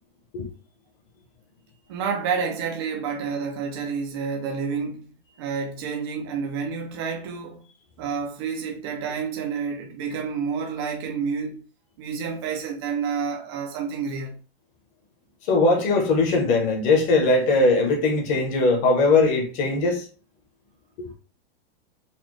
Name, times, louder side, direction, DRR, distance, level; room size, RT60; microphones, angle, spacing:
voice 1, 1.9-7.7 8.0-11.6 12.0-14.4, right 6 dB, 25° right, 0.4 m, -29 dB
voice 2, 15.5-20.1 21.0-21.1, left 3 dB, 25° left, 0.8 m, -20 dB
4.1 x 2.2 x 3.1 m
supercardioid pair, 170°, 33 cm